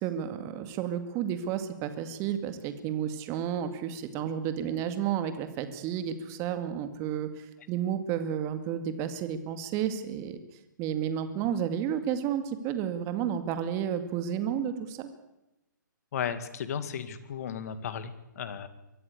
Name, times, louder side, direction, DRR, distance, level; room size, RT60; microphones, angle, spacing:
voice 1, 0.0-10.4 10.8-15.1, right 9 dB, 25° right, 9 dB, 2.1 m, -31 dB
voice 2, 16.1-18.7, left 8 dB, 50° left, 12 dB, 2.3 m, -35 dB
23.5 x 14.5 x 8.4 m, 0.93 s
figure-of-eight pair, 130°, 11 cm